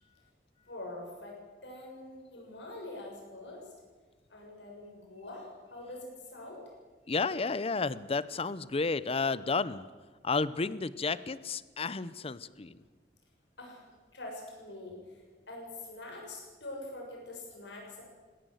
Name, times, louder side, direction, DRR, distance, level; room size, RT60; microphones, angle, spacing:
voice 1, 0.6-3.7 4.3-6.7 13.6-13.9 14.1-18.0, left 2 dB, 85° left, 0 dB, 6.8 m, -45 dB
voice 2, 7.1-9.8 10.2-12.8, left 4 dB, 35° left, 17 dB, 0.7 m, -32 dB
20.0 x 17.0 x 7.9 m, 1.3 s
head